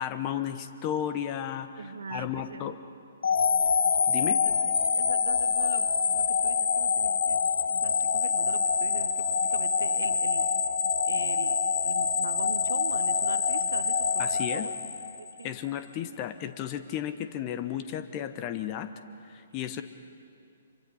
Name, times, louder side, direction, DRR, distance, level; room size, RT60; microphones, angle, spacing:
voice 1, 0.0-2.8 4.1-4.4 14.2-14.7 15.4-18.9 19.2-19.8, left 10 dB, 30° left, 10 dB, 1.0 m, -34 dB
voice 2, 1.8-2.7 4.4-4.5 4.9-5.9 6.1-7.4 7.7-10.4 11.0-11.6 11.8-14.7 15.2-15.6, right 5 dB, 60° right, 11 dB, 1.1 m, -41 dB
sound 1, 3.2-15.4, left 6 dB, 60° left, 1.2 m, -26 dB
26.5 x 24.0 x 5.7 m, 2.5 s
figure-of-eight pair, 125°, 0 cm